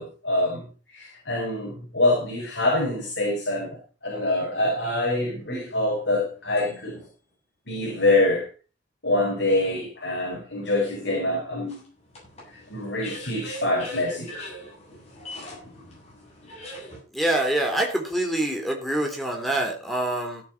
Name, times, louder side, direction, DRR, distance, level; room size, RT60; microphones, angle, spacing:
voice 1, 0.0-7.0 7.7-8.5 9.0-11.8 12.5-14.3, left 2 dB, 70° left, -1 dB, 5.1 m, -25 dB
sound 1, 5.4-7.1 7.8-7.9 11.7-17.0, left 1 dB, 35° left, 8.0 m, -42 dB
voice 2, 17.1-20.4, right 1 dB, ahead, 1 dB, 3.4 m, -25 dB
16.0 x 9.0 x 4.3 m, 0.34 s
head